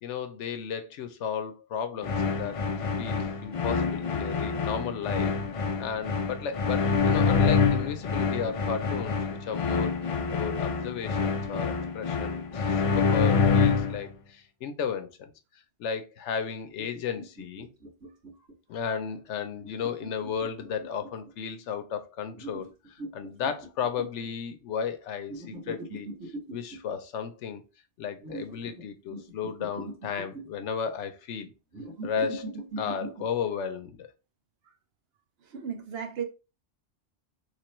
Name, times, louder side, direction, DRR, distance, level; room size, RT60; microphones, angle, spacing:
voice 1, 0.0-2.6 3.0-5.3 5.8-9.2 9.5-9.9 10.3-15.3 15.8-17.7 18.7-26.1 26.5-27.6 28.0-31.5 32.0-34.1, left 7 dB, 80° left, 0.9 m, -34 dB
sound 1, 2.0-14.1, left 5 dB, 60° left, 0.3 m, -26 dB
sound 2, 16.7-18.5 19.6-21.3 22.3-24.3 25.3-26.8 28.2-28.8 29.1-30.7 31.7-33.3, right 2 dB, 85° right, 1.9 m, -40 dB
voice 2, 35.5-36.2, right 7 dB, 65° right, 0.8 m, -34 dB
3.3 x 3.3 x 3.0 m
omnidirectional pair, 1.2 m